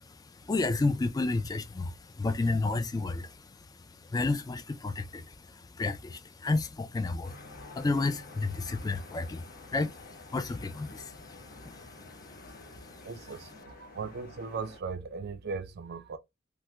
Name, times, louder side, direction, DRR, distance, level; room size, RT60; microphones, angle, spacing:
voice 1, 0.4-3.4 4.1-12.6, left 3 dB, 20° left, 0.3 m, -32 dB
sound 1, 7.2-14.8, left 3 dB, 50° left, 0.9 m, -50 dB
voice 2, 13.0-16.2, right 4 dB, 55° right, 0.4 m, -38 dB
3.4 x 2.0 x 3.0 m
head